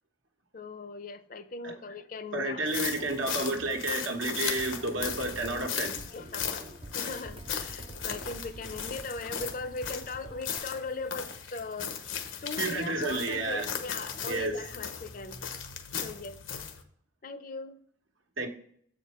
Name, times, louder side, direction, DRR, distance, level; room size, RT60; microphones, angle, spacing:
voice 1, 0.5-2.8 3.1-3.6 6.1-6.6 6.9-12.0 12.4-15.4 16.0-16.4 17.2-17.8, left 3 dB, 45° left, 11 dB, 0.5 m, -39 dB
voice 2, 2.3-6.0 12.6-13.7 14.3-14.6 18.4-18.5, right 2 dB, 85° right, 3 dB, 1.2 m, -31 dB
sound 1, 2.7-16.8, left 7 dB, 85° left, 0.9 m, -37 dB
sound 2, 4.5-10.6, right 2 dB, 25° right, 0.4 m, -47 dB
7.3 x 5.1 x 4.3 m, 0.63 s
head